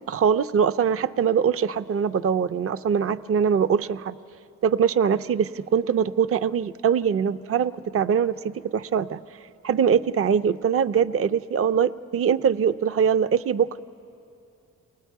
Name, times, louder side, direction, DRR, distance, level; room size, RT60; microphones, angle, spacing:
voice 1, 0.0-4.2 4.6-9.2 9.6-13.8, right 7 dB, 45° right, 15 dB, 0.5 m, -22 dB
28.5 x 20.0 x 4.6 m, 2.6 s
cardioid pair, 55°, 32 cm